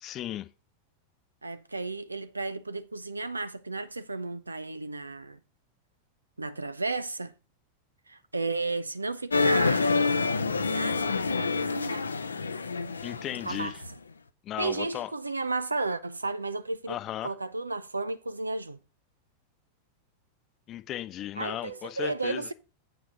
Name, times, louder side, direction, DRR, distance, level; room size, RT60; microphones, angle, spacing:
voice 1, 0.0-0.5 13.0-13.8 14.4-15.1 16.9-17.3 20.7-22.5, left 13 dB, 30° left, 0.8 m, -36 dB
voice 2, 1.4-5.4 6.4-7.3 8.1-10.0 10.5-12.1 13.5-13.8 14.6-17.0 17.2-18.8 21.4-22.5, right 3 dB, 80° right, 0.6 m, -33 dB
sound 1, 9.3-13.9, left 4 dB, 75° left, 0.6 m, -27 dB
8.2 x 5.0 x 5.6 m
figure-of-eight pair, 90°, 0 cm